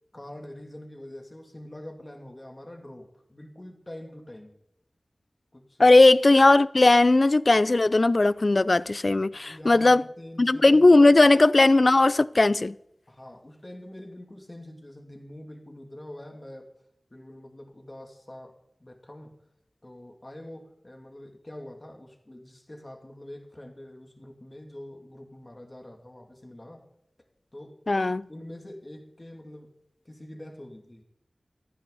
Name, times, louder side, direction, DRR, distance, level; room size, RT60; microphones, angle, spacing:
voice 1, 0.1-4.6 5.5-6.0 9.3-11.4 13.1-16.8 17.1-19.4 19.8-26.9 27.5-27.8 28.3-29.8 30.0-31.0, left 1 dB, 30° left, 2.7 m, -45 dB
voice 2, 5.8-10.0 10.4-12.7 27.9-28.3, left 2 dB, 50° left, 0.5 m, -18 dB
27.5 x 10.0 x 4.1 m
wide cardioid pair, 65°, 0 cm